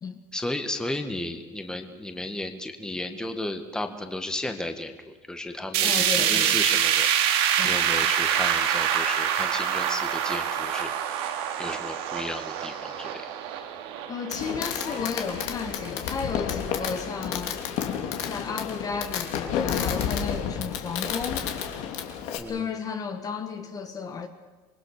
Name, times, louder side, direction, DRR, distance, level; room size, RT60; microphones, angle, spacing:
voice 1, 0.3-4.9 5.3-7.1 7.6-10.9 11.6-13.2 22.4-22.7, left 1 dB, 5° left, 6 dB, 1.7 m, -34 dB
sound 1, 5.7-15.9 16.3-16.4 16.8-16.9 17.7-17.8, right 9 dB, 85° right, 2.7 m, -26 dB
voice 2, 5.8-6.6 7.6-7.8 14.1-17.6 18.2-21.5 22.5-24.3, left 5 dB, 30° left, 7 dB, 1.5 m, -33 dB
Fireworks, 14.3-22.4, left 8 dB, 65° left, 2.8 m, -31 dB
26.5 x 20.5 x 6.7 m, 1.3 s
cardioid pair, 140°, 13 cm